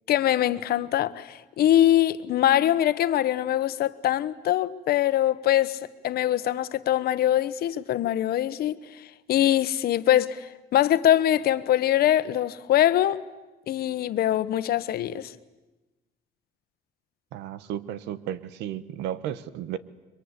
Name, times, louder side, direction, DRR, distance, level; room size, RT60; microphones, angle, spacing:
voice 1, 0.1-5.8 6.0-8.8 9.3-13.2 13.7-15.3, left 12 dB, 65° left, 1.3 m, -23 dB
voice 2, 17.3-19.8, right 11 dB, 90° right, 1.4 m, -33 dB
30.0 x 24.0 x 8.3 m
cardioid pair, 110°, 17 cm